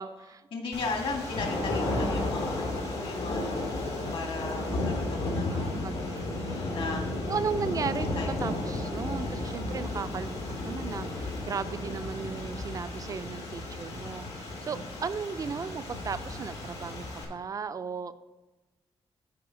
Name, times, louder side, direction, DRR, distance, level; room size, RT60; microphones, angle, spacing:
voice 1, 0.0-0.5 5.5-6.5 7.2-18.1, right 6 dB, 35° right, 13 dB, 0.4 m, -36 dB
voice 2, 0.5-7.0 8.2-8.3, left 3 dB, 70° left, 1 dB, 1.8 m, -37 dB
sound 1, 0.7-17.2, left 2 dB, 90° left, 1.9 m, -33 dB
8.6 x 4.8 x 5.4 m, 1.1 s
wide cardioid pair, 140°, 10 cm